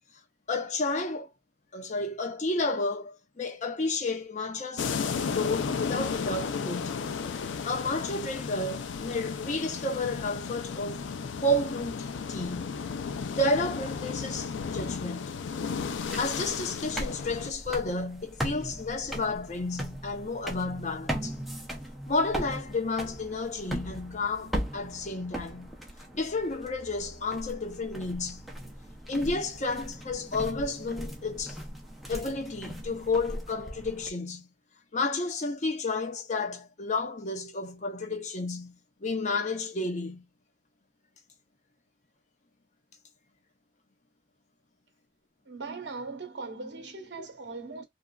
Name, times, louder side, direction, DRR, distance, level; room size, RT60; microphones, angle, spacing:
voice 1, 0.5-1.3 1.7-4.9 5.3-7.0 7.7-11.0 11.4-12.8 13.3-15.4 15.9-21.4 22.1-25.7 26.1-28.4 29.1-31.6 32.1-34.5 34.9-38.7 39.0-40.2 47.2-47.3, left 2 dB, 40° left, 0.7 m, -31 dB
sound 1, 4.8-17.5, left 5 dB, 85° left, 0.4 m, -34 dB
sound 2, 15.7-34.1, equal, ahead, 0.6 m, -39 dB
voice 2, 45.5-47.8, right 3 dB, 70° right, 0.9 m, -39 dB
2.8 x 2.4 x 2.3 m
head